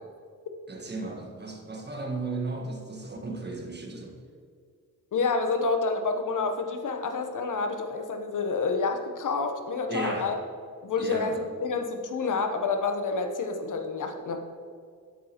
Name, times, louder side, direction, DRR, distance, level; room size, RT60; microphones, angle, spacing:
voice 1, 0.7-4.2 9.9-10.3 11.0-11.4, right 3 dB, 30° right, 1 dB, 1.5 m, -35 dB
voice 2, 5.1-10.4 10.8-14.4, left 4 dB, 55° left, 5 dB, 1.1 m, -28 dB
9.4 x 7.3 x 3.0 m, 2.1 s
cardioid pair, 60°, 36 cm